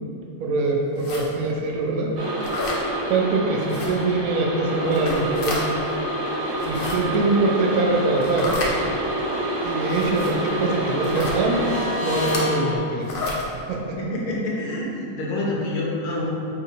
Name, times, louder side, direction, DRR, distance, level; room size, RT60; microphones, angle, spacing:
voice 1, 0.4-2.2 3.1-5.6 6.6-8.6 9.6-11.6 12.0-13.1 13.7-14.0, right 3 dB, 85° right, -1 dB, 1.0 m, -23 dB
sound 1, 1.0-1.3 2.4-2.8 3.7-3.9 4.8-5.6 6.5-6.9 8.2-8.7 9.9-10.3 11.0-11.4 12.2-12.4 13.0-13.4, left 2 dB, 60° left, 0.6 m, -30 dB
sound 2, 2.2-12.8, right 1 dB, 55° right, 0.9 m, -27 dB
voice 2, 14.0-16.3, left 1 dB, 85° left, -4 dB, 1.2 m, -27 dB
4.9 x 2.8 x 2.7 m, 2.7 s
omnidirectional pair, 1.5 m